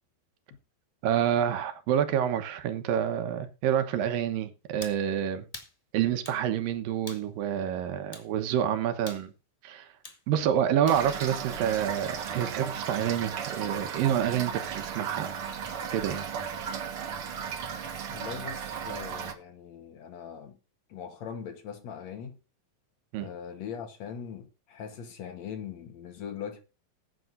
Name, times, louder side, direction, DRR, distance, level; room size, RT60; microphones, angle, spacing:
voice 1, 1.0-5.4 5.9-9.3 9.6-9.9 10.3-15.3 15.9-16.2 23.1-23.3, right 9 dB, 75° right, 2.8 m, -28 dB
sound 1, 4.8-5.0 5.5-5.7 6.2-6.4 7.1-7.3 8.1-8.3 9.1-9.3 10.0-10.2 10.9-11.1, left 2 dB, 35° left, 0.5 m, -44 dB
Toilet flush / Fill (with liquid), 10.9-19.3, right 7 dB, 55° right, 1.7 m, -35 dB
voice 2, 18.1-20.6 20.9-22.4 23.2-26.6, left 7 dB, 60° left, 2.1 m, -41 dB
20.0 x 9.2 x 2.6 m
omnidirectional pair, 4.1 m